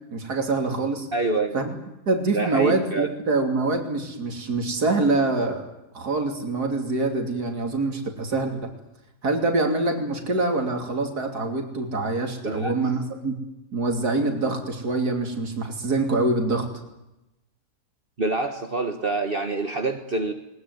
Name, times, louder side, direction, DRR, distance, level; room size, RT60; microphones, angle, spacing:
voice 1, 0.1-1.1 1.5-1.8 2.1-5.7 5.9-8.7 9.2-13.4 13.7-16.7, right 3 dB, 80° right, 3 dB, 3.5 m, -25 dB
voice 2, 1.1-1.5 2.3-3.1 12.4-12.7 18.2-20.3, right 3 dB, 35° right, 5 dB, 1.6 m, -26 dB
21.0 x 20.0 x 9.5 m, 0.92 s
omnidirectional pair, 1.7 m